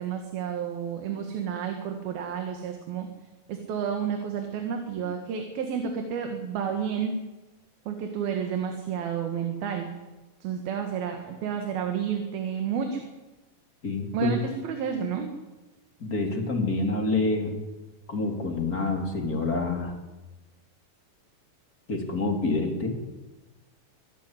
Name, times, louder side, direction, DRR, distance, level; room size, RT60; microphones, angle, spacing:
voice 1, 0.0-3.1 3.5-7.1 7.9-9.9 10.4-13.1 14.1-15.3, right 7 dB, 80° right, 4 dB, 3.8 m, -31 dB
voice 2, 13.8-14.3 16.0-17.6 18.1-19.9 21.9-23.0, left 3 dB, 25° left, 3 dB, 3.4 m, -27 dB
24.0 x 13.5 x 10.0 m, 1.1 s
omnidirectional pair, 4.3 m